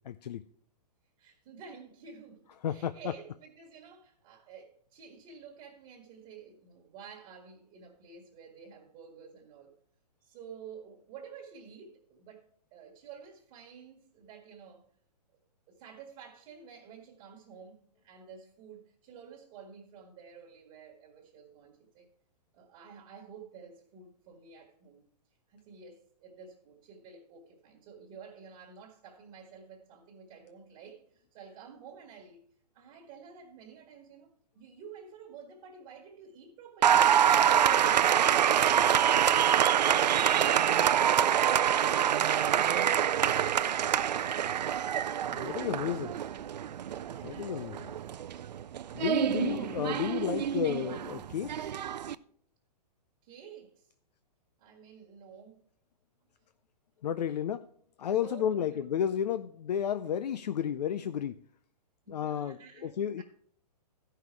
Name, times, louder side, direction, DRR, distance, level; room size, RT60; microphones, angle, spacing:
voice 1, 0.1-0.4 2.6-3.0 45.3-46.1 47.2-47.8 48.9-51.7 57.0-57.7 58.0-61.4 62.1-62.6 62.8-63.2, left 9 dB, 80° left, 0.5 m, -32 dB
voice 2, 1.2-9.7 10.2-14.8 15.7-22.1 22.5-25.1 25.5-32.4 32.7-37.1 45.4-46.3 46.9-48.4 53.2-53.9 54.6-55.6 57.3-57.4 58.1-58.9 62.0-63.2, right 6 dB, 30° right, 1.6 m, -51 dB
Applause, 36.8-52.1, right 9 dB, 90° right, 0.4 m, -26 dB
13.0 x 5.6 x 4.5 m
hypercardioid pair, 145°, 21 cm